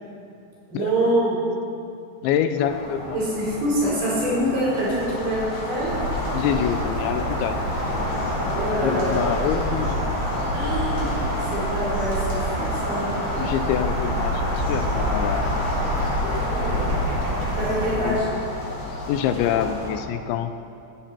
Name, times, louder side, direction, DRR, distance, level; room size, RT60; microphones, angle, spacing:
voice 1, 0.7-1.4 3.1-6.0 8.5-9.3 10.5-11.2 11.5-13.2 16.5-17.1 17.5-18.4, right 1 dB, 70° right, -7 dB, 6.8 m, -25 dB
voice 2, 2.2-3.2 6.3-7.6 8.8-10.1 13.4-15.5 16.2-16.5 18.0-18.2 19.1-20.5, left 9 dB, 85° left, 9 dB, 2.9 m, -26 dB
sound 1, 2.6-20.0, left 2 dB, 60° left, 3.9 m, -31 dB
sound 2, 4.7-19.9, left 1 dB, 45° left, 5.1 m, -42 dB
sound 3, 5.8-18.1, equal, 90° right, 6.4 m, -27 dB
16.0 x 14.0 x 4.5 m, 2.4 s
omnidirectional pair, 5.4 m